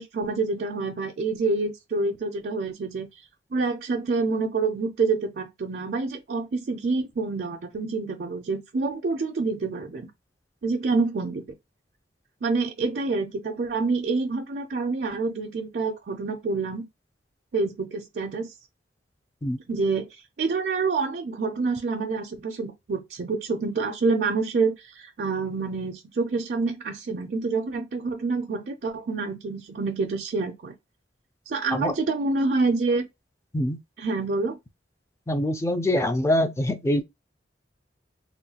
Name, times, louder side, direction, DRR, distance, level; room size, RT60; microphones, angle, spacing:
voice 1, 0.0-3.1 3.5-10.1 10.6-11.4 12.4-16.8 17.5-18.5 19.7-30.7 31.5-33.1 34.0-34.6, right 3 dB, 55° right, 0.4 m, -27 dB
voice 2, 35.3-37.0, left 1 dB, 15° left, 0.3 m, -24 dB
2.9 x 2.2 x 2.8 m
head